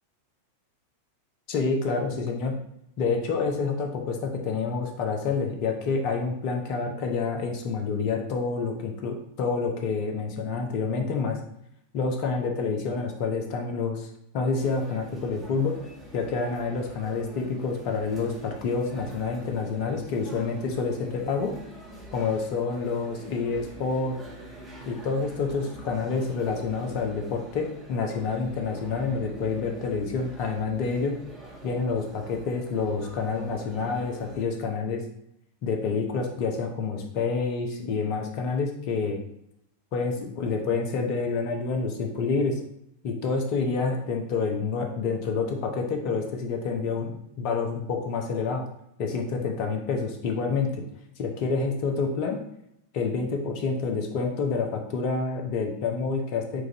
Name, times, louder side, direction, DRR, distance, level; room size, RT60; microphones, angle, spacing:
voice 1, 1.5-2.6 3.0-11.4 11.9-14.1 14.3-15.8 16.1-21.5 22.1-24.2 24.9-31.2 31.6-35.0 35.6-39.2 39.9-42.6 43.0-47.1 47.4-48.6 49.0-50.8 51.2-52.4 52.9-56.6, left 4 dB, 45° left, 3 dB, 0.8 m, -28 dB
sound 1, 14.6-34.4, right 1 dB, 20° right, 1.2 m, -45 dB
6.1 x 2.5 x 3.0 m, 0.77 s
figure-of-eight pair, 90°, 0 cm